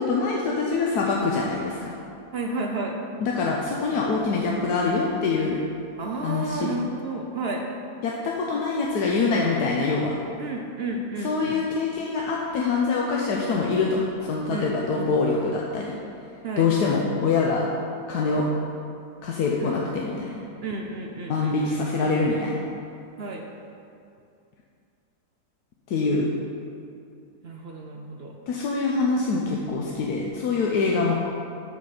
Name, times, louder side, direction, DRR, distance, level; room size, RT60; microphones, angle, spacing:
voice 1, 0.0-1.9 3.2-5.6 6.2-6.7 8.0-10.1 11.2-16.0 16.6-17.7 18.1-18.4 19.2-20.4 21.3-22.6 25.9-26.3 28.5-31.1, left 4 dB, 85° left, -2 dB, 1.3 m, -24 dB
voice 2, 2.3-3.0 6.0-7.7 10.4-11.6 14.5-15.1 16.4-16.7 19.6-19.8 20.6-21.8 23.2-23.5 27.4-28.4, right 2 dB, 60° right, 2 dB, 0.7 m, -32 dB
12.5 x 4.3 x 4.9 m, 2.5 s
omnidirectional pair, 1.6 m